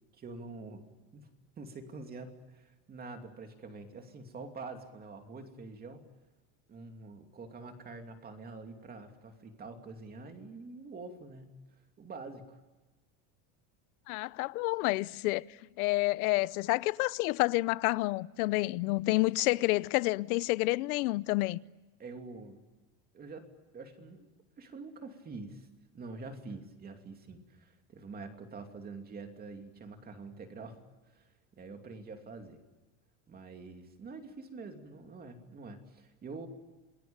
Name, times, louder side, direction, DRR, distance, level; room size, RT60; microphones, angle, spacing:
voice 1, 0.1-0.8 1.1-1.3 1.6-6.1 6.7-12.6 22.0-22.6 23.1-23.5 23.7-24.3 24.6-25.7 25.9-32.6 33.3-36.5, right 3 dB, 20° right, 2.8 m, -46 dB
voice 2, 14.1-21.6, left 21 dB, 85° left, 0.8 m, -29 dB
27.5 x 20.5 x 8.8 m
cardioid pair, 160°, 42 cm